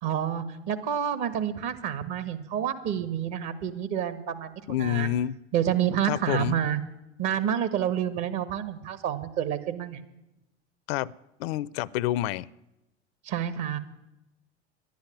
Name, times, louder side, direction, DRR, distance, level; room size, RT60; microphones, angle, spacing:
voice 1, 0.0-4.5 4.8-5.1 5.5-6.8 7.2-10.0 13.2-13.8, right 9 dB, 55° right, 1.6 m, -28 dB
voice 2, 4.7-5.4 6.1-6.5 10.9-11.1 11.4-12.5, left 13 dB, 65° left, 0.5 m, -28 dB
11.0 x 10.5 x 9.6 m
hypercardioid pair, 80°, 34 cm